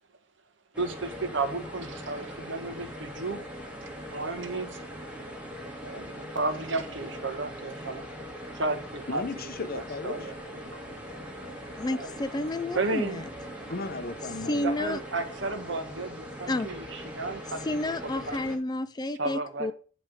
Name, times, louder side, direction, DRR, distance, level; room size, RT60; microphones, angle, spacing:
sound 1, 0.7-18.6, equal, 5° right, 1.9 m, -41 dB
voice 1, 0.8-3.4 4.1-4.8 5.8-8.0 8.5-9.2 9.7-10.3 10.6-10.8 11.9-12.1 12.7-13.2 14.6-18.4 19.2-19.7, right 3 dB, 70° right, 1.4 m, -33 dB
voice 2, 9.1-10.2 13.7-14.8, left 3 dB, 50° left, 0.9 m, -35 dB
voice 3, 11.8-13.3 14.4-15.0 16.5-16.7 17.6-19.7, left 1 dB, 20° left, 0.4 m, -30 dB
10.5 x 3.5 x 6.2 m
head